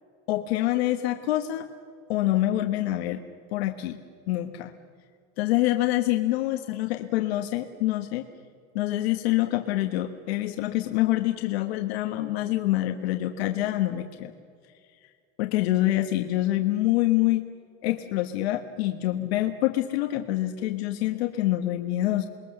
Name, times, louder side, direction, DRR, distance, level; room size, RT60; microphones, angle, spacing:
voice 1, 0.3-1.7 2.1-3.2 3.5-4.0 4.3-4.7 5.4-8.3 8.7-14.3 15.4-17.5 17.8-22.3, left 15 dB, 60° left, 5 dB, 1.4 m, -26 dB
28.5 x 21.5 x 6.7 m, 2.2 s
supercardioid pair, 170°, 35 cm